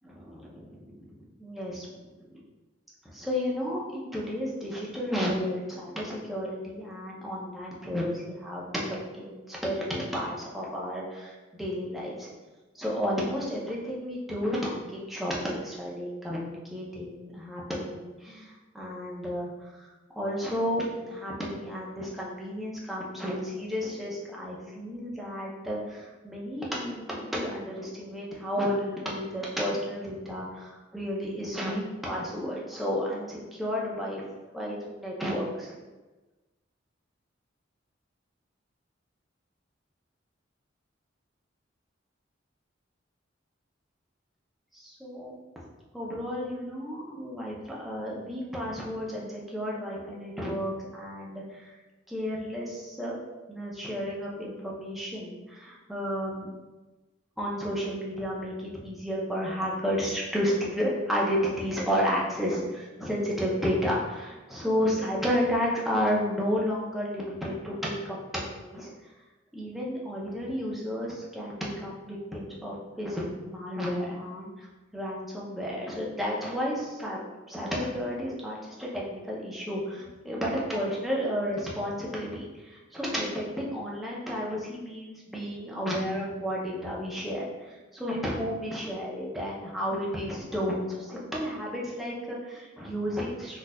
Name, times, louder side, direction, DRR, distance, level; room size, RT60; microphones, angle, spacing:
voice 1, 0.0-2.4 3.0-12.3 12.7-34.2 34.5-35.7 44.7-45.4 45.9-51.7 52.1-53.2 53.5-56.5 57.4-68.9 69.5-74.7 74.9-77.2 77.5-93.6, equal, ahead, -5 dB, 0.5 m, -32 dB
4.1 x 2.4 x 2.2 m, 1.2 s
head